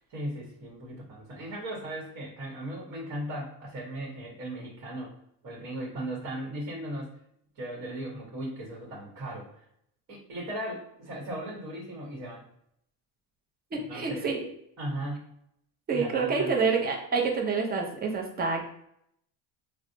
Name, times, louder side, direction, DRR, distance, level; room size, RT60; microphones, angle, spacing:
voice 1, 0.1-5.1 5.4-7.1 7.6-9.6 10.1-12.4 13.9-14.3 14.8-15.3 15.9-16.5, right 1 dB, 40° right, -2 dB, 1.0 m, -37 dB
voice 2, 13.7-14.5 15.9-18.7, right 4 dB, 20° right, 1 dB, 0.6 m, -27 dB
4.0 x 2.1 x 2.7 m, 0.72 s
supercardioid pair, 125°, 45 cm